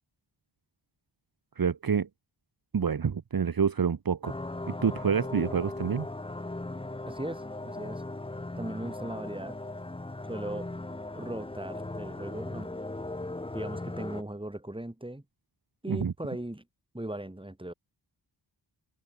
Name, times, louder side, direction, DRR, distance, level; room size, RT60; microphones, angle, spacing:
voice 1, 1.6-2.1 2.7-4.4 4.7-6.1 15.9-16.1, right 6 dB, 50° right, 1.4 m, -27 dB
sound 1, 4.2-14.2, left 2 dB, 10° left, 1.1 m, -38 dB
voice 2, 7.1-8.0 8.6-9.6 10.2-10.7 11.1-12.7 13.5-15.2 15.8-16.6 16.9-17.7, right 1 dB, 10° right, 6.4 m, -38 dB
cardioid pair, 70°, 43 cm